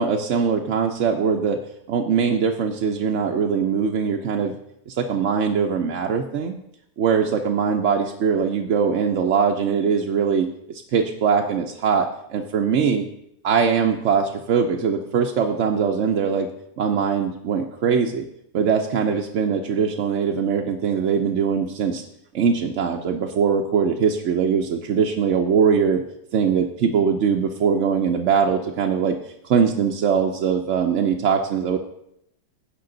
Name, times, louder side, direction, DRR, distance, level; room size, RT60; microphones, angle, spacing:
voice 1, 0.0-1.6 1.9-4.6 4.9-6.6 7.0-13.1 13.4-16.5 16.8-18.3 18.5-22.0 22.3-26.0 26.3-29.2 29.4-31.8, right 6 dB, 60° right, 2 dB, 0.9 m, -21 dB
16.0 x 5.5 x 3.9 m, 0.76 s
omnidirectional pair, 1.8 m